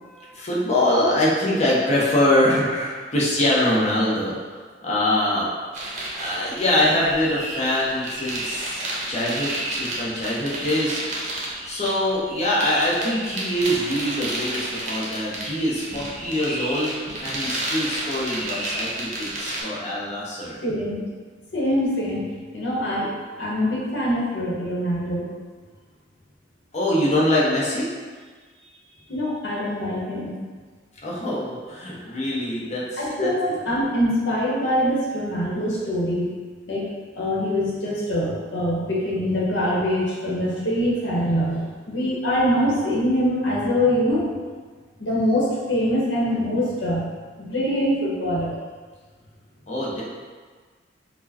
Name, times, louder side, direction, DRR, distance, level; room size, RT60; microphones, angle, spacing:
voice 1, 0.0-5.5 6.2-11.0 11.6-16.9 17.2-20.6 26.7-27.9 31.0-33.3 49.7-50.0, left 1 dB, 40° left, -6 dB, 0.8 m, -24 dB
sound 1, 5.7-19.6, right 1 dB, 40° right, 0.7 m, -31 dB
voice 2, 20.6-21.0 21.5-22.2 22.5-23.1 23.4-25.3 29.1-30.3 33.0-36.3 36.7-36.9 37.1-44.3 45.0-47.1 47.4-48.5, equal, 70° left, -5 dB, 1.0 m, -24 dB
4.3 x 2.1 x 2.8 m, 1.5 s
head